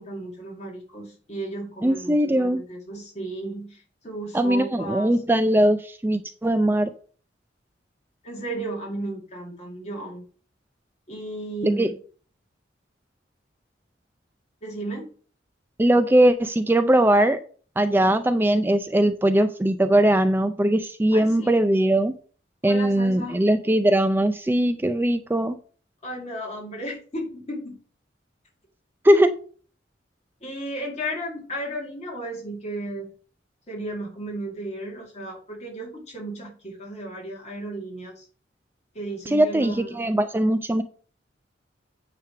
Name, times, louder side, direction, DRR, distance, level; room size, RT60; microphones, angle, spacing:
voice 1, 0.0-5.1 8.2-10.2 11.1-12.0 14.6-15.1 21.1-21.5 22.7-23.4 26.0-27.7 30.4-33.1 33.7-38.3 38.9-39.9, right 1 dB, 35° left, 2.1 m, -34 dB
voice 2, 1.8-2.6 4.3-6.9 11.6-11.9 15.8-17.4 17.8-22.1 22.6-25.6 29.0-29.4 39.3-40.8, right 1 dB, 10° right, 0.4 m, -20 dB
9.5 x 3.4 x 5.7 m
head